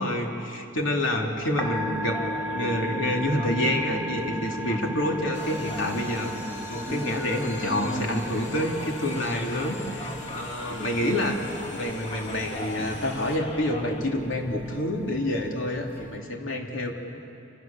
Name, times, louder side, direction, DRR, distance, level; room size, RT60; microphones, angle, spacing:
voice 1, 0.0-2.2 2.5-6.3 6.7-11.4 11.7-17.0, left 1 dB, 80° left, 1 dB, 3.2 m, -28 dB
Musical instrument, 1.4-16.1, right 1 dB, 10° left, 3.5 m, -38 dB
Male speech man speaking, 2.0-14.0, equal, 25° left, 1.7 m, -39 dB
sound 1, 5.3-13.4, left 2 dB, 60° left, 3.0 m, -40 dB
27.5 x 27.0 x 7.3 m, 2.8 s
head